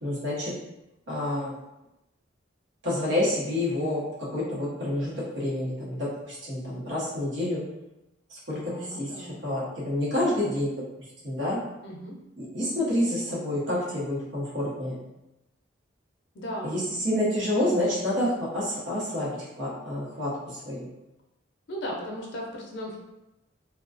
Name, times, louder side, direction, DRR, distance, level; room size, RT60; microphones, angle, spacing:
voice 1, 0.0-0.5 1.1-1.5 2.8-7.6 8.3-10.8 11.2-11.6 12.4-15.0 16.6-20.9, left 1 dB, 65° right, -5 dB, 0.9 m, -28 dB
voice 2, 8.5-9.4 11.8-12.1 16.3-16.7 21.7-23.0, equal, 60° left, -1 dB, 0.5 m, -36 dB
2.3 x 2.2 x 2.4 m, 0.94 s
head